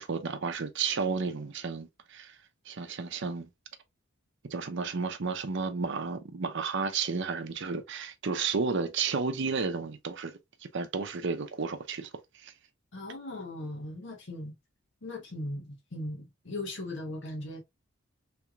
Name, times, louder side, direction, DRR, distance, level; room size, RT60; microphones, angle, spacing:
voice 1, 0.0-2.4 2.7-3.5 4.5-10.3 10.6-12.1 12.3-12.5, right 5 dB, 60° right, 0.6 m, -32 dB
voice 2, 12.9-14.5 15.0-17.6, left 1 dB, 60° left, 1.1 m, -38 dB
3.3 x 3.1 x 2.3 m
head